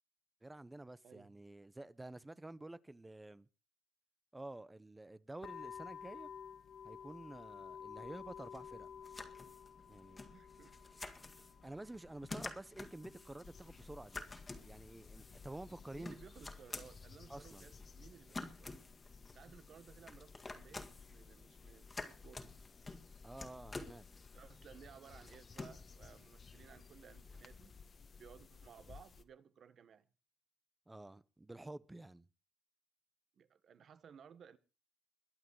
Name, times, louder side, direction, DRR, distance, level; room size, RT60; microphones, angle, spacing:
voice 1, 0.4-3.5 4.3-6.3 6.8-8.9 9.9-10.2 11.6-14.2 14.6-16.2 17.3-17.7 23.2-24.1 30.9-32.3, right 2 dB, 10° right, 0.7 m, -50 dB
sound 1, 5.4-16.0, left 8 dB, 55° left, 0.6 m, -53 dB
sound 2, 8.0-27.6, left 3 dB, 20° left, 1.8 m, -52 dB
voice 2, 10.3-10.7 12.3-12.6 15.9-18.9 19.3-22.5 24.3-27.7 28.2-30.1 33.4-34.6, right 7 dB, 55° right, 1.4 m, -59 dB
sound 3, 13.4-29.2, left 5 dB, 35° left, 1.2 m, -58 dB
22.0 x 8.6 x 4.7 m
cardioid pair, 120°, 0 cm